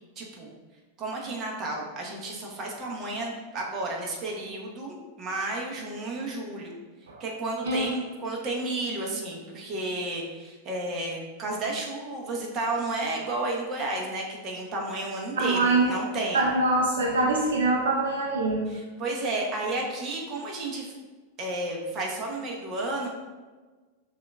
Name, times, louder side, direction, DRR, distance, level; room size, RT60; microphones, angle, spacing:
voice 1, 0.2-0.5 1.0-6.8 7.2-16.4 18.7-20.9 21.4-23.1, right 2 dB, 35° right, -2 dB, 1.0 m, -32 dB
voice 2, 15.4-15.9 16.3-18.7, right 2 dB, 75° right, 0 dB, 0.4 m, -24 dB
6.7 x 2.5 x 2.3 m, 1.3 s
hypercardioid pair, 95°, 0 cm